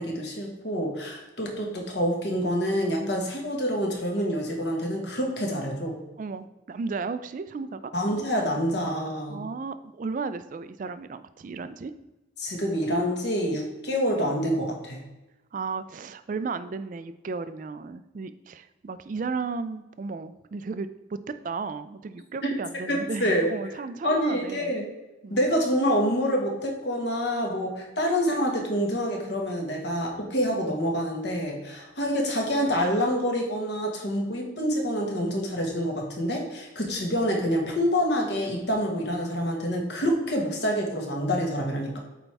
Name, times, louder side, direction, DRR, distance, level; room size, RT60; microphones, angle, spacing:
voice 1, 0.0-6.0 7.9-9.5 12.4-15.0 22.9-23.5 24.0-24.8 25.3-42.0, equal, 60° left, 0 dB, 1.6 m, -27 dB
voice 2, 6.2-7.9 9.3-11.9 15.5-21.2 21.4-24.8 25.2-25.4, right 4 dB, 40° right, 12 dB, 0.3 m, -34 dB
8.1 x 4.6 x 3.4 m, 1.0 s
head